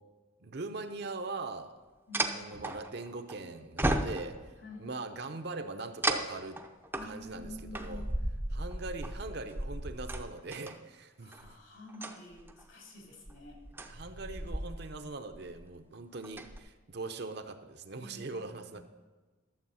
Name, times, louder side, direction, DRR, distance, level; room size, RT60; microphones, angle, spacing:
voice 1, 0.4-1.7 2.3-4.5 4.8-6.6 7.0-8.1 8.5-11.5 13.8-18.8, right 3 dB, 55° right, 7 dB, 0.7 m, -41 dB
sound 1, 1.0-1.1 2.1-3.3 3.8-4.6 6.0-10.7 11.3-11.5 11.9-12.6 13.3-15.0 15.3-15.7 16.1-16.6, right 1 dB, 10° right, 0.6 m, -35 dB
voice 2, 2.1-2.7 4.6-4.9 6.9-8.1 11.2-13.6 18.0-18.8, left 1 dB, 70° left, 0 dB, 2.9 m, -49 dB
12.0 x 7.4 x 5.6 m, 1.3 s
head